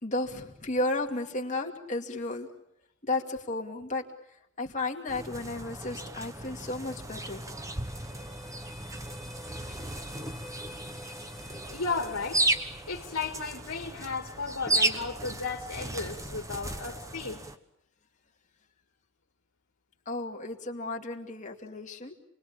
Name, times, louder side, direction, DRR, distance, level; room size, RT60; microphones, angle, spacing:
voice 1, 0.0-2.5 3.0-4.0 4.6-7.4 20.1-22.1, left 2 dB, 35° left, 2 dB, 2.5 m, -33 dB
sound 1, 5.1-17.6, right 2 dB, 15° right, 1.2 m, -34 dB
sound 2, 6.8-13.8, left 1 dB, ahead, 2.0 m, -50 dB
voice 2, 11.7-12.4 12.9-17.4, left 4 dB, 70° left, 2 dB, 2.1 m, -34 dB
28.5 x 21.0 x 8.8 m, 0.78 s
head